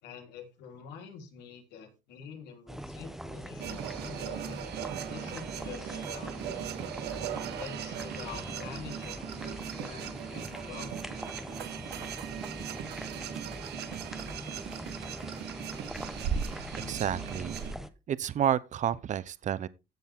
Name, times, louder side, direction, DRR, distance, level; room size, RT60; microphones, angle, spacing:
voice 1, 0.0-4.6 5.1-6.9 7.6-11.4, left 7 dB, 85° left, 3.7 m, -47 dB
sound 1, 2.7-17.9, equal, ahead, 1.1 m, -42 dB
sound 2, 3.6-17.7, right 9 dB, 75° right, 1.6 m, -38 dB
voice 2, 16.9-17.6 18.1-19.7, right 9 dB, 45° right, 0.8 m, -30 dB
15.5 x 7.2 x 3.7 m
cardioid pair, 110°, 17 cm